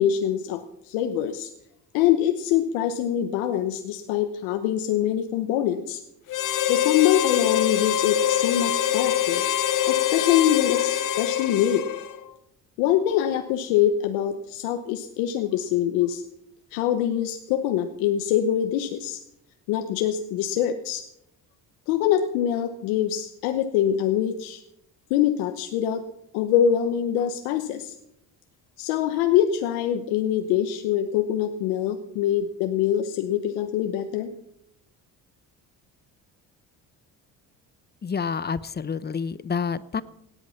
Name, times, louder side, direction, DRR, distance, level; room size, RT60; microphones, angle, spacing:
voice 1, 0.0-1.5 1.9-6.0 6.7-9.4 9.9-11.9 12.8-16.2 16.7-19.2 19.7-21.0 21.9-24.6 25.1-26.0 26.3-28.0 28.8-34.3, left 10 dB, 90° left, 7 dB, 1.1 m, -24 dB
Harmonica, 6.3-12.3, left 11 dB, 60° left, 1.2 m, -24 dB
voice 2, 38.0-40.0, left 6 dB, 25° left, 17 dB, 0.8 m, -28 dB
17.5 x 10.5 x 5.8 m, 0.80 s
supercardioid pair, 80°, 37 cm